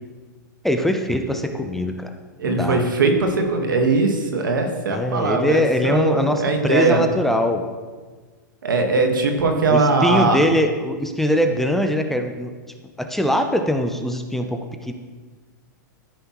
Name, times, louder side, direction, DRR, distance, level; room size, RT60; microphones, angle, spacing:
voice 1, 0.6-2.1 2.4-2.9 4.9-7.7 9.7-12.5 13.0-14.9, left 1 dB, 5° left, 5 dB, 0.6 m, -22 dB
voice 2, 2.4-7.0 8.6-10.4, right 3 dB, 85° right, 4 dB, 1.5 m, -20 dB
13.5 x 5.4 x 3.1 m, 1.4 s
hypercardioid pair, 125°, 11 cm